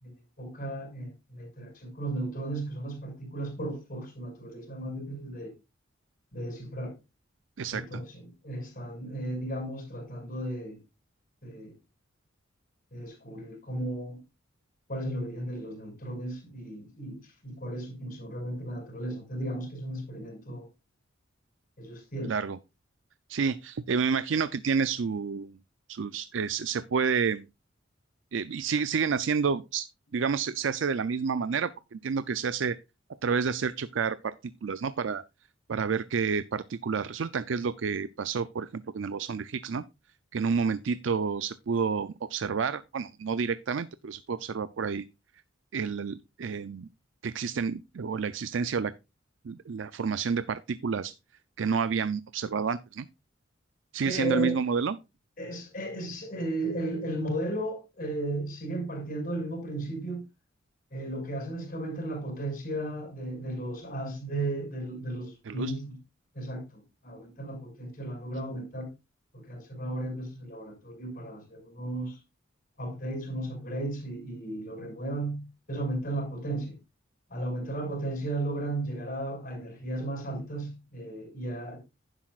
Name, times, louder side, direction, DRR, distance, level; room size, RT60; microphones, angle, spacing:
voice 1, 0.0-5.5 6.3-6.9 7.7-10.8 11.4-11.7 12.9-14.2 14.9-20.7 21.8-22.3 54.1-54.5 55.4-60.3 60.9-66.0 66.3-68.9 69.3-72.2 72.8-76.8 77.3-81.8, right 1 dB, 45° left, 5.9 m, -35 dB
voice 2, 7.6-8.0 22.2-22.6 23.3-25.5 25.9-27.5 28.3-32.8 33.2-34.3 34.6-35.2 35.7-39.8 40.3-45.0 45.7-46.9 47.2-48.9 49.4-51.1 51.6-53.1 53.9-55.0 65.5-65.7, right 5 dB, 70° right, 0.4 m, -29 dB
11.5 x 10.5 x 2.4 m
head